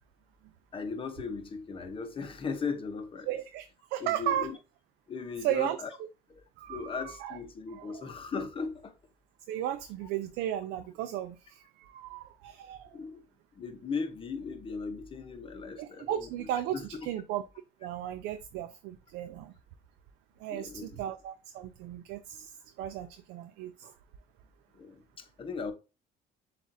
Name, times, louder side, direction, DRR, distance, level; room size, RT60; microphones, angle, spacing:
voice 1, 0.7-3.3 4.0-4.6 5.1-5.9 6.3-6.4 6.7-9.0 12.9-13.2 13.5-16.5 16.7-16.8 20.5-21.0 24.7-25.7, left 5 dB, 30° left, 0.8 m, -37 dB
voice 2, 3.3-4.5 5.4-5.8 6.6-7.4 7.7-8.0 9.5-13.0 15.8-17.4 17.8-19.5 20.4-23.9, right 11 dB, 90° right, 0.4 m, -35 dB
7.2 x 2.5 x 2.7 m
cardioid pair, 110°, 17 cm